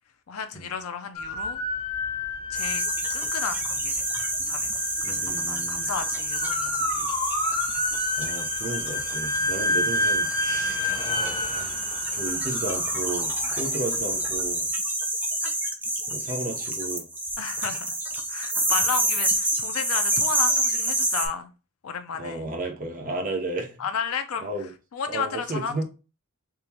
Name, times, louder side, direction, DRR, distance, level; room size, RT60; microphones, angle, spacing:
voice 1, 0.3-1.6 2.5-2.8 3.1-4.1 4.5-7.1 9.4-9.6 13.4-13.6 15.4-15.5 17.4-17.9 18.3-21.5 21.8-22.5 23.8-24.5 24.9-25.8, left 6 dB, 80° left, 0.5 m, -33 dB
sound 1, 1.2-14.2, left 2 dB, 20° left, 0.8 m, -30 dB
sound 2, 2.5-21.3, right 1 dB, 10° right, 0.4 m, -28 dB
voice 2, 5.0-5.9 7.0-7.1 8.2-10.8 11.4-11.7 12.1-14.6 16.1-17.0 22.1-23.7 24.4-24.7 25.1-25.8, right 2 dB, 40° right, 0.8 m, -33 dB
3.6 x 3.0 x 2.8 m
head